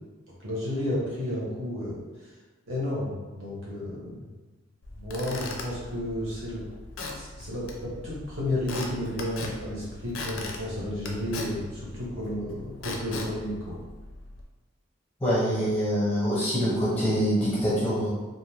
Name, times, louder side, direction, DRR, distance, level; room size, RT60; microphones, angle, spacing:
voice 1, 0.4-2.0 2.7-4.2 4.9-6.6 7.1-13.8, left 1 dB, 80° right, -6 dB, 1.1 m, -32 dB
Squeak / Wood, 4.8-14.4, left 3 dB, 85° left, 0.5 m, -39 dB
voice 2, 15.2-18.1, equal, 10° left, -7 dB, 0.5 m, -25 dB
2.5 x 2.4 x 3.2 m, 1.2 s
head